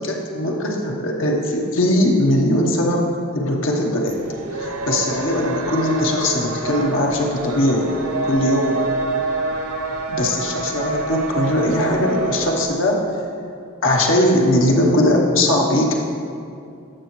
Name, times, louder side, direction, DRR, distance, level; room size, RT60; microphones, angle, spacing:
voice 1, 0.0-3.1 3.3-4.2 4.5-7.9 8.2-8.9 10.1-13.0 13.8-16.0, left 1 dB, 60° left, 0 dB, 1.0 m, -20 dB
sound 1, 4.1-12.7, right 3 dB, 85° right, 0.8 m, -27 dB
14.0 x 6.2 x 3.1 m, 2.4 s
head